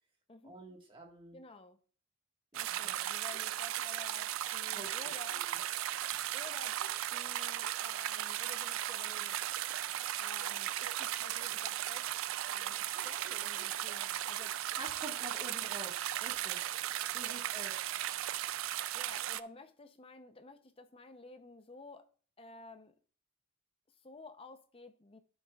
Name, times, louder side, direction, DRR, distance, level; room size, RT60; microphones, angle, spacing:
voice 1, 0.4-1.4 2.5-2.9 4.7-4.9 5.3-5.6 14.8-16.7 17.1-17.8, right 2 dB, 25° right, 1.5 m, -48 dB
voice 2, 1.3-1.8 2.5-5.5 6.3-6.8 7.1-9.4 10.2-12.1 12.5-14.6 17.2-17.4 18.9-22.1 22.4-23.0 23.9-25.2, left 3 dB, 30° left, 0.6 m, -53 dB
sound 1, 2.5-19.4, right 13 dB, 85° right, 0.3 m, -36 dB
12.0 x 6.5 x 2.3 m
head